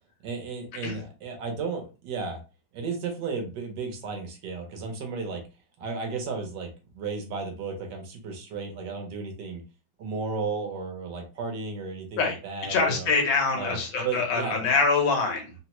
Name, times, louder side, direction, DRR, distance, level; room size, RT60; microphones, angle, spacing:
voice 1, 0.2-2.4 2.7-5.4 5.8-9.6 10.0-13.1 13.5-14.7, right 4 dB, 70° right, 4 dB, 1.4 m, -34 dB
voice 2, 12.7-15.5, left 4 dB, 80° left, 2 dB, 1.6 m, -24 dB
3.7 x 2.1 x 2.9 m, 0.32 s
omnidirectional pair, 2.1 m